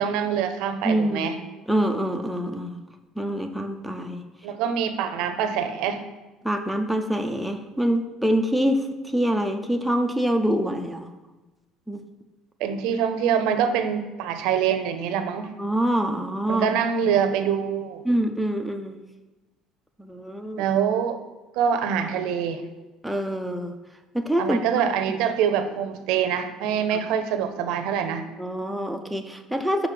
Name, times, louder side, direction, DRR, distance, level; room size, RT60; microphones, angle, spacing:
voice 1, 0.0-1.4 4.4-6.0 12.6-15.5 16.5-18.0 20.6-21.2 21.5-22.6 24.4-28.3, right 8 dB, 70° right, 9 dB, 0.6 m, -25 dB
voice 2, 0.8-1.3 1.7-2.8 3.2-4.2 6.4-11.1 11.9-12.0 15.6-16.7 17.0-17.2 18.0-19.0 20.0-20.7 23.0-23.8 24.1-24.8 26.9-27.0 28.4-29.9, right 1 dB, ahead, 3 dB, 0.3 m, -25 dB
5.2 x 4.8 x 5.8 m, 1.1 s
cardioid pair, 180°, 0 cm